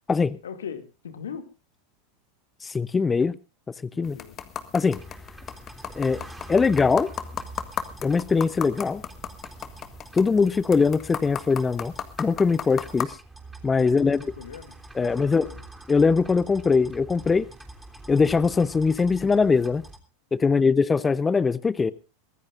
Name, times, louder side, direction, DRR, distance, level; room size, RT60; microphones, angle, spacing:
voice 1, 0.4-1.5 3.9-4.4 13.8-15.6 20.4-20.6, left 7 dB, 85° left, 8 dB, 2.3 m, -40 dB
voice 2, 2.6-3.3 4.0-4.2 4.7-5.0 6.0-6.2 6.5-7.1 8.0-9.0 10.1-11.9 12.2-13.2 13.6-14.2 15.0-15.5 15.9-17.5 18.1-19.8 20.3-21.9, left 4 dB, 20° left, 17 dB, 0.7 m, -21 dB
sound 1, 4.0-13.1, left 8 dB, 35° left, 1.9 m, -37 dB
sound 2, 4.9-20.0, right 1 dB, 10° right, 3.3 m, -45 dB
23.5 x 15.0 x 2.5 m, 0.31 s
hypercardioid pair, 100°, 0 cm